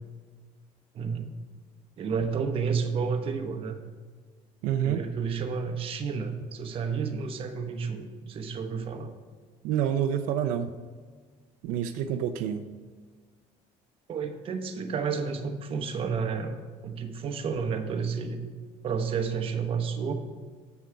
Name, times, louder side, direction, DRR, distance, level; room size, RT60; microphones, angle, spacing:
voice 1, 0.9-1.3 2.0-3.8 4.8-9.1 14.1-18.5 18.8-20.1, right 5 dB, 45° right, 6 dB, 0.9 m, -31 dB
voice 2, 4.6-5.0 9.6-10.7 11.6-12.7, right 9 dB, 85° right, 7 dB, 0.5 m, -27 dB
7.8 x 7.1 x 4.8 m, 1.5 s
cardioid pair, 140°, 13 cm